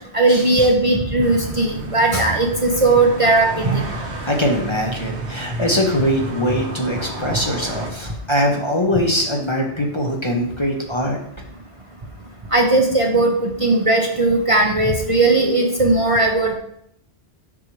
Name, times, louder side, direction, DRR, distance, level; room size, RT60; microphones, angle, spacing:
voice 1, 0.1-3.8 12.5-16.5, right 2 dB, 35° right, 0 dB, 0.8 m, -17 dB
sound 1, 1.2-7.9, right 2 dB, 75° right, 1.4 m, -31 dB
voice 2, 4.2-11.2, equal, 30° left, 0 dB, 0.9 m, -22 dB
7.0 x 6.4 x 3.2 m, 0.70 s
omnidirectional pair, 1.1 m